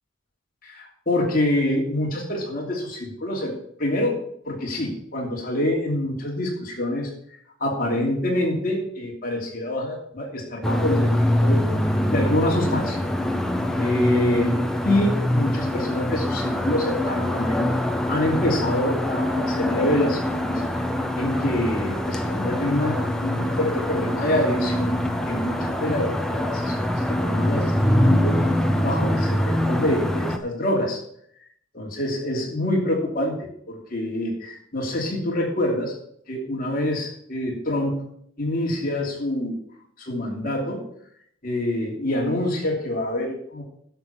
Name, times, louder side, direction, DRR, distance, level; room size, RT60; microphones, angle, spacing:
voice 1, 0.6-3.5 3.8-4.2 4.4-7.1 7.6-11.7 12.1-13.0 13.8-14.6 14.8-17.7 18.1-20.6 21.2-25.0 25.3-31.0 31.7-35.9 36.3-38.1 38.4-39.6 40.0-40.8 41.4-43.6, left 1 dB, 45° left, -1 dB, 3.0 m, -26 dB
sound 1, 10.6-30.4, left 1 dB, ahead, 0.7 m, -24 dB
11.0 x 7.1 x 5.9 m, 0.67 s
head